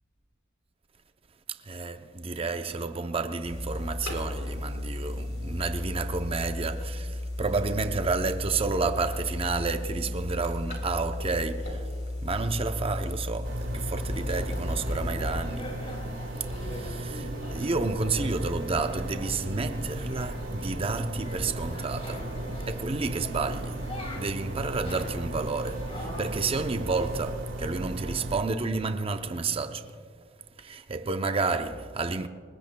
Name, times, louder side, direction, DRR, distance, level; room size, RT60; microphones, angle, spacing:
voice 1, 1.6-11.9 12.2-15.8 16.6-23.9 24.2-29.9 30.6-32.3, right 3 dB, 30° right, 0.6 m, -30 dB
sound 1, 3.4-15.3, left 1 dB, 70° left, 3.5 m, -34 dB
sound 2, 13.4-28.4, right 1 dB, 80° right, 1.8 m, -36 dB
sound 3, 14.1-27.4, equal, 30° left, 2.5 m, -40 dB
29.0 x 20.0 x 2.2 m
head